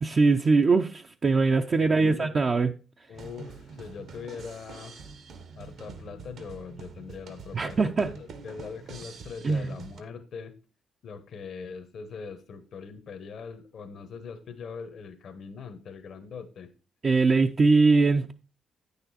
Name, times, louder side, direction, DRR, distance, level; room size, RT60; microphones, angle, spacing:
voice 1, 0.0-2.7 7.5-8.1 9.4-9.7 17.0-18.3, right 4 dB, 40° right, 0.5 m, -22 dB
voice 2, 1.8-2.4 3.1-5.0 5.6-10.5 11.0-16.7, left 5 dB, 60° left, 1.1 m, -41 dB
sound 1, 3.1-10.0, right 5 dB, 65° right, 1.2 m, -45 dB
9.0 x 6.8 x 4.2 m
cardioid pair, 90°, 0 cm